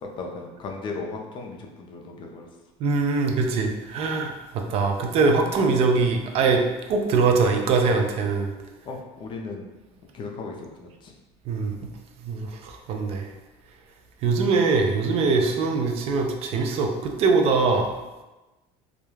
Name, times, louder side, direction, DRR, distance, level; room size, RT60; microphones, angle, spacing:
voice 1, 0.2-2.5 8.8-9.7 10.1-11.1, left 3 dB, 40° left, 1 dB, 0.4 m, -36 dB
voice 2, 2.8-6.6 6.9-8.5 11.5-11.8 12.3-13.2 14.2-17.9, right 4 dB, 50° right, 3 dB, 0.4 m, -22 dB
2.3 x 2.1 x 3.1 m, 1.1 s
cardioid pair, 140°, 13 cm